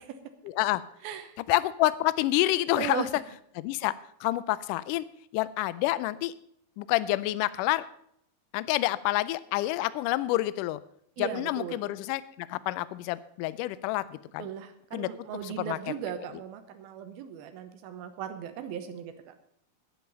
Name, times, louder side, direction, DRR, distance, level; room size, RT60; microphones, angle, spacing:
voice 1, 0.5-0.8 1.5-3.1 3.6-3.9 4.2-5.1 5.3-6.3 6.8-7.9 8.5-10.8 11.2-14.5 14.9-15.1 15.4-15.8, left 17 dB, 85° left, 17 dB, 1.8 m, -28 dB
voice 2, 1.0-1.4 2.7-3.1 11.2-11.8 14.4-19.1, right 8 dB, 80° right, 8 dB, 2.8 m, -37 dB
10.5 x 9.8 x 7.0 m, 0.69 s
omnidirectional pair, 4.4 m